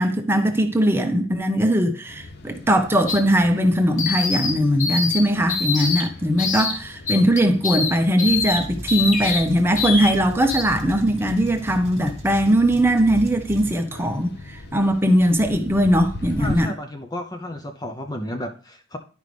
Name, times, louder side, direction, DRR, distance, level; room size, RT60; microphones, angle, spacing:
voice 1, 0.0-16.7, equal, 10° right, 0.9 m, -20 dB
sound 1, 2.1-16.6, left 2 dB, 55° left, 0.8 m, -40 dB
sound 2, 3.1-3.2 4.0-4.5 4.8-5.2 5.5-6.0 6.4-6.7 7.1-7.9 8.2-8.6 8.9-9.4 9.8-10.1 10.5-10.6, left 4 dB, 40° left, 1.5 m, -24 dB
sound 3, 8.3-13.8, right 1 dB, 30° right, 1.6 m, -37 dB
voice 2, 16.4-19.0, left 1 dB, 20° left, 0.6 m, -32 dB
11.0 x 5.1 x 3.3 m
head